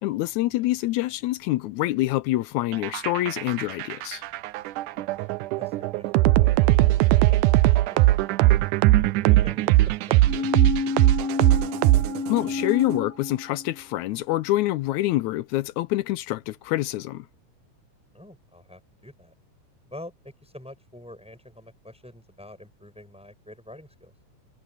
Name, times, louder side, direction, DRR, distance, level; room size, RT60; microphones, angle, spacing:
voice 1, 0.0-4.2 12.3-17.3, left 16 dB, 80° left, 1.8 m, -26 dB
sound 1, 2.7-12.5, right 17 dB, 80° right, 2.0 m, -20 dB
voice 2, 4.9-8.6 9.2-11.9 18.1-19.3 19.9-24.1, left 1 dB, ahead, 7.8 m, -47 dB
sound 2, 10.2-14.0 14.4-14.5, left 4 dB, 35° right, 0.9 m, -30 dB
omnidirectional pair, 3.8 m